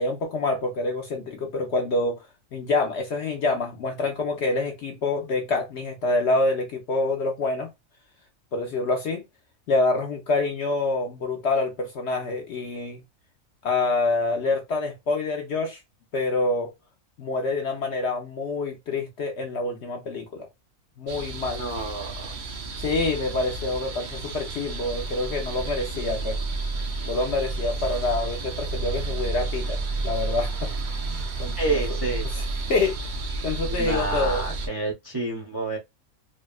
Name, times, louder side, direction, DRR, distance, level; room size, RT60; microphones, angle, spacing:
voice 1, 0.0-2.2 2.5-7.7 8.5-9.2 9.7-13.0 13.6-15.8 16.1-16.7 17.2-20.5 21.0-21.6 22.8-26.4 27.0-29.8 30.0-30.7 31.4-31.8 32.4-32.5 32.7-33.2 33.4-34.4, left 3 dB, 60° left, 0.7 m, -26 dB
sound 1, 21.1-34.7, right 3 dB, 80° right, 0.4 m, -31 dB
voice 2, 21.4-22.3 31.6-32.3 33.6-35.8, right 2 dB, 25° right, 0.5 m, -29 dB
3.4 x 2.0 x 2.3 m
omnidirectional pair, 1.5 m